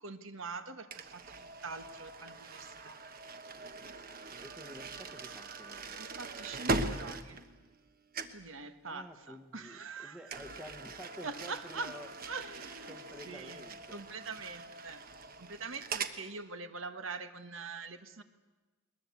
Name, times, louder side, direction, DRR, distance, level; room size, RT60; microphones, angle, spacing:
voice 1, 0.0-3.0 6.0-7.4 8.3-10.2 11.2-11.9 12.3-13.0 13.2-15.0 15.4-18.2, right 4 dB, 75° right, 9 dB, 1.5 m, -44 dB
sound 1, 0.9-7.9 8.1-8.5 10.3-16.2, right 3 dB, 45° right, 1.3 m, -41 dB
voice 2, 4.3-6.0 8.9-12.1 12.9-14.0, equal, 5° right, 4 dB, 1.0 m, -50 dB
21.0 x 21.0 x 8.3 m, 1.2 s
head